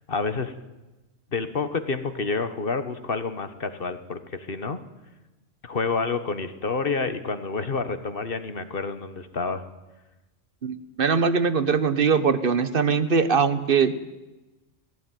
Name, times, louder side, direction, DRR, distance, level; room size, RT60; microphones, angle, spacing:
voice 1, 0.1-0.5 1.3-4.8 5.6-9.6, left 4 dB, 45° left, 10 dB, 1.4 m, -28 dB
voice 2, 10.6-14.0, right 5 dB, 45° right, 12 dB, 1.2 m, -22 dB
18.0 x 16.0 x 9.3 m, 1.1 s
omnidirectional pair, 1.3 m